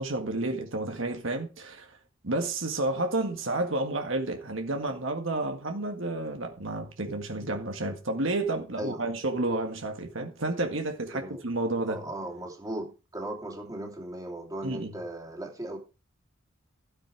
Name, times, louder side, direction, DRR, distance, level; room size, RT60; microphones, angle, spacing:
voice 1, 0.0-1.9 2.2-12.0 14.6-14.9, right 2 dB, 65° right, 1.9 m, -30 dB
voice 2, 8.8-9.1 11.1-11.4 11.8-15.8, right 1 dB, 15° right, 2.8 m, -37 dB
13.0 x 8.7 x 4.7 m
head